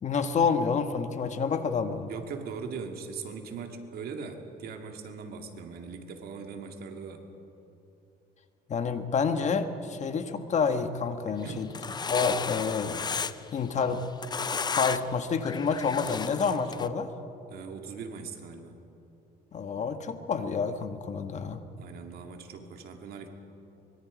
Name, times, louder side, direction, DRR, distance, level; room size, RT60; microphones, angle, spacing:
voice 1, 0.0-2.1 8.7-11.7 12.1-13.0 13.5-14.0 14.7-17.1 19.5-21.6, left 5 dB, 45° left, 8 dB, 1.4 m, -28 dB
voice 2, 2.1-7.2 11.3-11.7 17.5-18.7 21.8-23.3, right 5 dB, 65° right, 4 dB, 2.3 m, -40 dB
sound 1, 11.5-13.5 13.9-15.1 15.4-16.9, left 5 dB, 25° left, 0.6 m, -33 dB
24.0 x 22.5 x 5.1 m, 2.8 s
cardioid pair, 110°, 17 cm